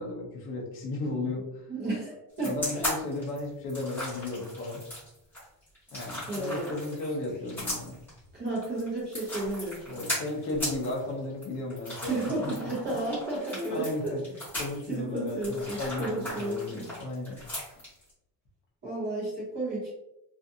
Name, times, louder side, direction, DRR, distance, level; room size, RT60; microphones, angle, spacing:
voice 1, 0.0-1.4 2.4-4.8 5.9-8.0 9.9-12.2 12.4-12.5 12.8-13.2 13.7-14.2 14.6-17.4 17.7-17.8, left 2 dB, 30° left, -1 dB, 0.5 m, -35 dB
voice 2, 1.7-2.8 6.3-6.7 7.0-7.1 8.3-10.0 12.0-14.1 14.9-16.9 18.8-19.9, right 2 dB, 25° right, -6 dB, 0.7 m, -32 dB
sound 1, 2.4-18.1, left 1 dB, 5° left, 1.1 m, -37 dB
2.5 x 2.4 x 2.6 m, 0.88 s
cardioid pair, 180°, 42 cm